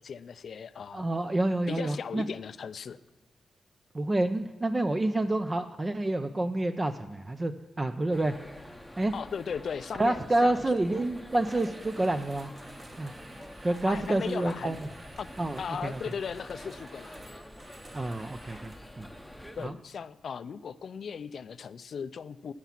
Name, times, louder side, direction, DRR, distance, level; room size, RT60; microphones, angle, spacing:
voice 1, 0.0-1.1 1.7-3.0 9.1-10.6 13.8-14.8 15.2-15.3 15.6-17.4 19.6-22.5, left 6 dB, 60° left, 15 dB, 0.4 m, -37 dB
voice 2, 0.9-2.2 3.9-8.3 9.0-9.1 10.0-12.5 13.0-13.1 13.6-14.9 15.4-16.0 17.9-19.1 19.6-19.7, right 2 dB, 20° right, 8 dB, 0.4 m, -28 dB
sound 1, 8.1-19.7, left 1 dB, ahead, 0.8 m, -47 dB
sound 2, 11.4-18.9, right 2 dB, 35° right, 1.4 m, -52 dB
15.0 x 6.0 x 5.7 m, 1.3 s
wide cardioid pair, 125°, 0 cm